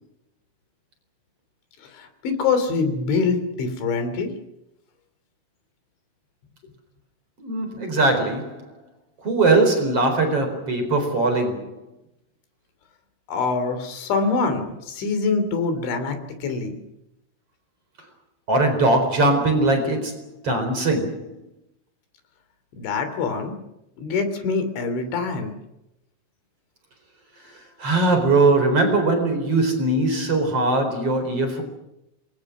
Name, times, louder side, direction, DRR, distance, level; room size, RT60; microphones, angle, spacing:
voice 1, 1.9-4.3 13.3-16.8 22.7-23.5 24.0-25.5, left 4 dB, 65° left, 5.4 m, -24 dB
voice 2, 7.4-8.6 9.2-11.8 18.5-21.3 27.8-31.6, right 2 dB, 30° right, 4.7 m, -20 dB
27.5 x 23.0 x 6.1 m
omnidirectional pair, 5.8 m